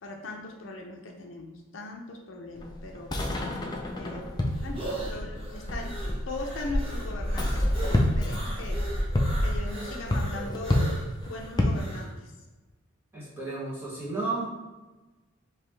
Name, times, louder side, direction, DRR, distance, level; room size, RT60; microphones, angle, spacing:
voice 1, 0.0-3.4 4.0-5.9 6.3-7.6 8.2-8.8 9.4-11.0 11.2-12.3, left 2 dB, 70° left, 1 dB, 0.6 m, -39 dB
sound 1, 2.5-11.8, left 1 dB, 20° left, 0.5 m, -28 dB
sound 2, 3.9-12.1, right 1 dB, 30° right, 1.3 m, -40 dB
voice 2, 13.1-14.5, right 3 dB, 10° right, -7 dB, 1.3 m, -32 dB
5.0 x 2.9 x 3.3 m, 1.2 s
head